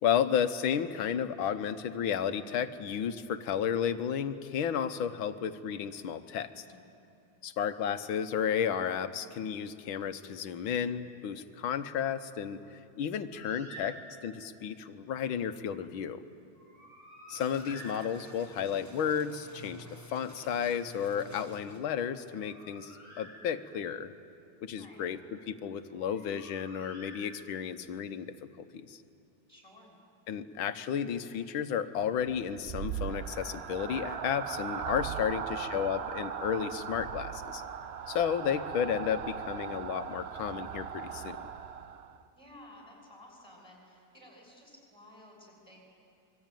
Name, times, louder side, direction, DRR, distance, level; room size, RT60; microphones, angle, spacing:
voice 1, 0.0-6.6 7.4-14.0 14.2-16.2 17.3-24.1 24.6-25.2 25.5-28.3 28.7-29.0 30.3-37.6 38.1-41.4, left 8 dB, 85° left, 10 dB, 1.8 m, -32 dB
voice 2, 6.5-7.0 24.7-25.2 29.5-30.0 35.2-35.7 42.3-45.9, left 1 dB, 10° left, -1 dB, 6.6 m, -55 dB
Bird, 13.3-14.5 16.5-18.6 22.1-23.9 25.9-27.8, equal, 35° right, 8.4 m, -50 dB
sound 1, 17.3-22.0, equal, 15° right, 0.8 m, -51 dB
sound 2, 32.2-42.2, right 8 dB, 80° right, 0.5 m, -38 dB
25.5 x 23.0 x 9.2 m, 2.6 s
omnidirectional pair, 2.2 m